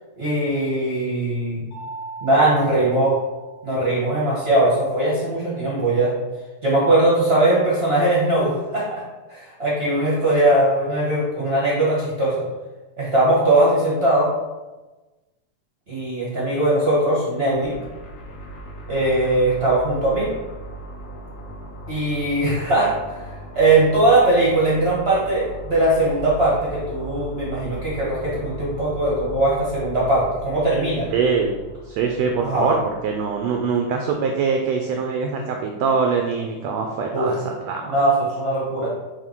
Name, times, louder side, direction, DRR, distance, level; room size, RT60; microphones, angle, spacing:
voice 1, 0.2-1.7 2.2-3.1 3.6-6.1 6.6-9.0 9.3-12.4 13.0-14.3 15.9-17.7 18.9-20.3 21.9-23.2 23.5-31.1 32.4-32.7 37.1-37.3 37.9-38.9, right 1 dB, 40° right, -7 dB, 0.8 m, -20 dB
Mallet percussion, 1.7-4.2, right 3 dB, 45° left, 2.4 m, -39 dB
sound 1, 17.6-33.6, right 1 dB, 65° left, 1.6 m, -38 dB
voice 2, 31.1-31.5 31.9-38.0, right 5 dB, 80° right, 2 dB, 1.5 m, -23 dB
7.1 x 3.3 x 4.5 m, 1.2 s
omnidirectional pair, 3.5 m